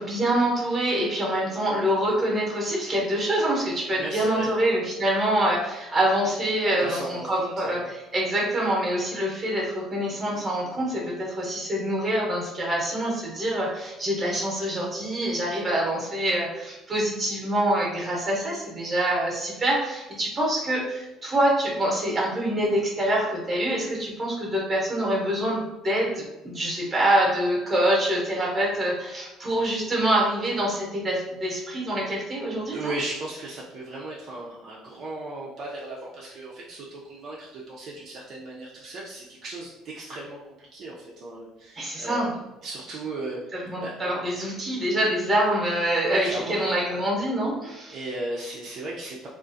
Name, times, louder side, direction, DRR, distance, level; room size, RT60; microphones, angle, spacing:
voice 1, 0.0-32.9 41.7-42.3 43.7-48.0, right 1 dB, 15° right, -3 dB, 0.9 m, -25 dB
voice 2, 3.9-4.5 6.6-7.9 19.5-19.6 32.7-44.1 46.0-46.7 47.9-49.3, right 2 dB, 40° right, -5 dB, 0.5 m, -36 dB
3.5 x 2.4 x 2.6 m, 0.98 s
cardioid pair, 165°, 0 cm